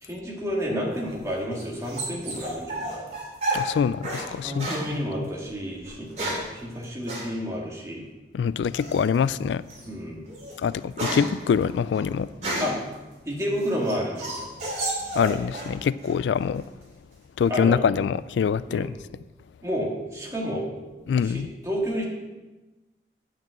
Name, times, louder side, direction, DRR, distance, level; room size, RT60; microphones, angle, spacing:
voice 1, 0.0-3.1 4.4-8.1 9.8-10.3 12.6-12.8 13.3-14.5 17.5-17.9 18.7-18.9 19.6-20.7 21.2-22.0, equal, 15° right, -3 dB, 2.0 m, -30 dB
dog max whine howl bark strange guttural sounds, 1.0-4.3 4.6-4.9 5.8-6.5 7.1-7.3 8.7-9.1 9.7-9.8 10.3-12.9 13.4-15.7 16.0-16.6, right 1 dB, 40° right, 2.9 m, -31 dB
voice 2, 3.5-5.3 8.3-9.6 10.6-12.3 15.2-16.6 17.4-18.9 21.1-21.5, left 7 dB, 85° left, 17 dB, 0.3 m, -25 dB
8.8 x 6.0 x 7.7 m, 1.2 s
head